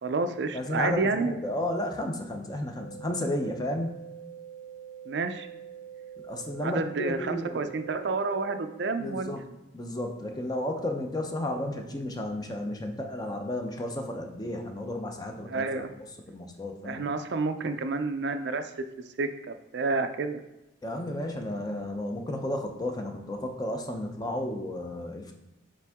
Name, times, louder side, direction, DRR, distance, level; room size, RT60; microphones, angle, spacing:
voice 1, 0.0-1.3 5.1-5.5 6.6-9.3 15.5-15.9 16.8-18.7 19.2-20.4, right 3 dB, 55° right, 8 dB, 0.4 m, -29 dB
voice 2, 0.5-4.0 6.3-7.7 9.0-9.4 9.7-15.7 16.3-17.0 20.8-25.3, left 1 dB, 20° left, 3 dB, 0.6 m, -33 dB
sound 1, 2.8-8.8, right 9 dB, 75° left, 0.9 m, -45 dB
7.4 x 3.6 x 3.5 m, 0.99 s
head